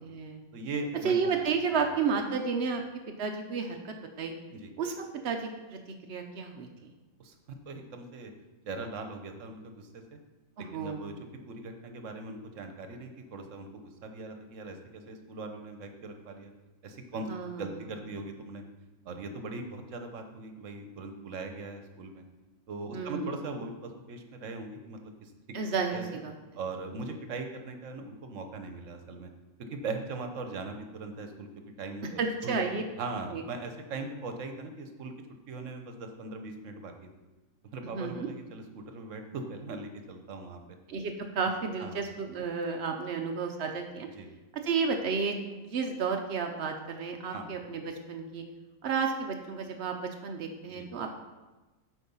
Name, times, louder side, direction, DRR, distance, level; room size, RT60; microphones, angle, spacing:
voice 1, 0.0-0.4 1.0-2.8 3.2-4.3 4.8-4.9 5.2-5.8 6.1-6.9 10.7-11.0 17.3-17.7 22.9-23.3 25.5-26.3 32.2-32.8 33.3-33.4 37.9-38.3 40.9-44.1 44.6-48.4 48.8-51.1, right 5 dB, 90° right, 3 dB, 0.5 m, -32 dB
voice 2, 0.5-1.1 4.5-4.7 7.2-8.3 8.6-10.2 10.7-11.1 11.5-16.5 16.8-17.3 17.6-18.6 19.1-22.2 22.7-25.3 25.9-26.2 26.6-29.3 29.7-31.5 31.8-32.6 33.0-35.1 35.5-37.1 37.7-40.6 41.8-42.0 44.1-44.3 47.3-47.5 50.6-50.9, right 3 dB, 55° right, 6 dB, 0.9 m, -40 dB
8.3 x 4.5 x 5.5 m, 1.2 s
omnidirectional pair, 2.0 m